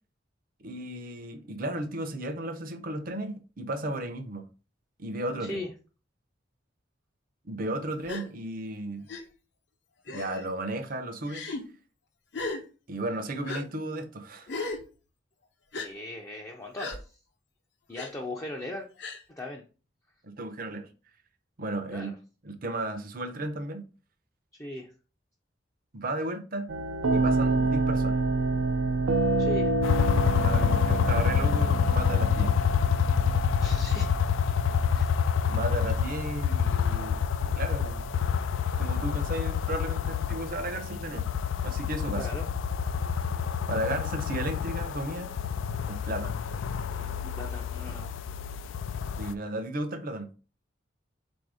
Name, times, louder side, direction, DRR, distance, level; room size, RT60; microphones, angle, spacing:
voice 1, 0.6-4.4 5.0-5.6 7.4-9.1 10.1-11.5 12.9-14.5 20.2-20.9 21.6-22.1 22.4-23.8 25.9-26.7 27.1-28.2 30.3-32.5 35.5-38.0 38.8-41.3 41.6-42.3 43.7-45.3 45.9-46.4 49.2-50.3, right 1 dB, 50° right, 0.6 m, -34 dB
voice 2, 5.4-5.7 15.7-17.1 17.9-18.9 19.3-19.6 21.9-22.1 24.5-24.9 29.4-29.7 33.6-34.5 35.0-35.1 42.2-42.4 47.2-48.1, left 2 dB, 15° left, 0.5 m, -38 dB
Gasp, 8.0-8.2 9.1-9.2 10.1-10.5 11.3-11.6 12.3-12.6 13.4-13.6 14.5-14.8 15.7-15.9 16.8-17.0 18.0-18.1 19.0-19.2, left 3 dB, 65° left, 0.8 m, -35 dB
sound 1, 26.7-43.2, right 2 dB, 90° right, 0.5 m, -30 dB
sound 2, 29.8-49.3, left 7 dB, 85° left, 0.3 m, -27 dB
3.9 x 2.6 x 4.8 m
head